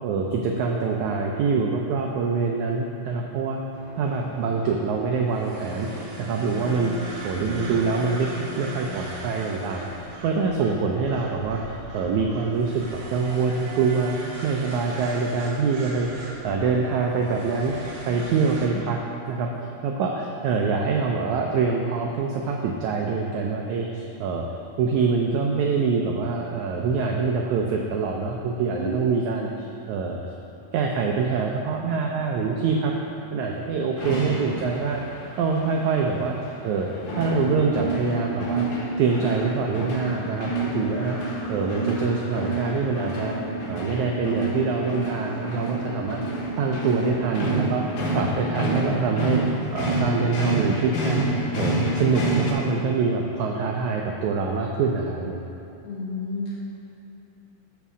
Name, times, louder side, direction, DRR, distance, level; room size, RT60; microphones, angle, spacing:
voice 1, 0.0-3.6 3.9-14.2 14.4-16.1 16.4-17.7 18.1-19.0 19.3-24.5 24.8-30.2 30.7-32.9 33.3-36.4 36.6-38.7 39.0-43.4 43.7-46.2 46.6-49.4 49.7-51.3 51.6-55.4, right 4 dB, 80° right, 1 dB, 1.7 m, -25 dB
sound 1, 3.7-18.7, right 1 dB, 65° right, 2.6 m, -39 dB
sound 2, 34.0-52.5, right 1 dB, 85° left, 3.4 m, -28 dB
voice 2, 55.8-56.5, left 2 dB, 50° left, -6 dB, 2.3 m, -32 dB
12.5 x 4.6 x 6.2 m, 2.9 s
omnidirectional pair, 4.1 m